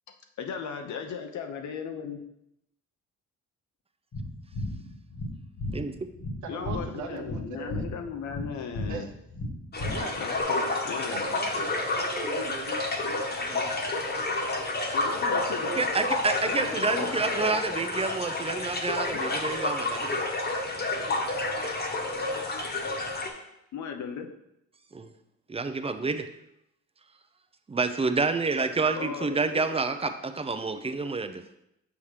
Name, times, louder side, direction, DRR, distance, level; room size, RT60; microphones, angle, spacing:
voice 1, 0.4-2.2 6.5-9.1 9.9-11.2 14.9-15.8 16.4-17.4 23.7-24.3 28.9-29.6, left 6 dB, 70° left, 5 dB, 0.9 m, -37 dB
sound 1, 4.1-10.4, left 1 dB, 50° left, 1.6 m, -35 dB
voice 2, 6.4-7.9 8.9-9.1 9.7-10.1 11.1-13.8 15.4-16.2, right 5 dB, 70° right, 5 dB, 0.8 m, -40 dB
sound 2, 9.7-23.3, left 2 dB, 35° left, 1.2 m, -30 dB
voice 3, 15.8-20.2 24.9-25.1 25.5-26.3 27.7-31.4, right 4 dB, 20° right, 9 dB, 0.5 m, -28 dB
7.0 x 5.7 x 3.3 m, 0.83 s
cardioid pair, 90°, 30 cm